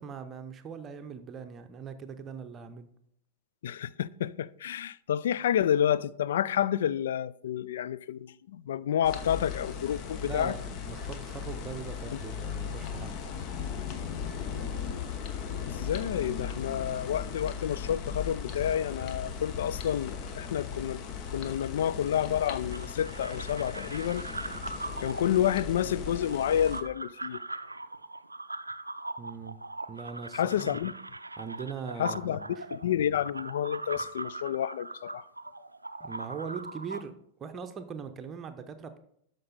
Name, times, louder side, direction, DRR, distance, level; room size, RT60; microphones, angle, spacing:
voice 1, 0.0-2.9 10.2-13.2 29.2-29.6 29.9-30.8 31.4-32.7 36.0-37.1 37.4-39.0, right 6 dB, 25° right, 0.8 m, -41 dB
voice 2, 3.6-10.6 15.7-24.3 25.0-27.4 30.3-30.9 32.0-35.2, left 10 dB, 60° left, 0.3 m, -29 dB
sound 1, 9.0-26.8, left 7 dB, 40° left, 1.0 m, -37 dB
sound 2, 22.7-37.0, right 2 dB, 85° right, 0.4 m, -41 dB
13.0 x 5.3 x 4.1 m
figure-of-eight pair, 90°, 0 cm